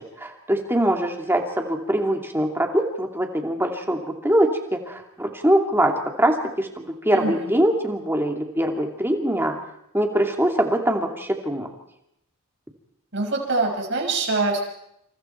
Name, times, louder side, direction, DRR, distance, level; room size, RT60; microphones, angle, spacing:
voice 1, 0.2-5.9 6.2-9.5 9.9-11.7, right 1 dB, 10° right, 3 dB, 2.6 m, -23 dB
voice 2, 7.1-7.5 13.1-14.6, right 3 dB, 55° right, 1 dB, 6.1 m, -24 dB
28.0 x 27.5 x 4.6 m, 0.78 s
head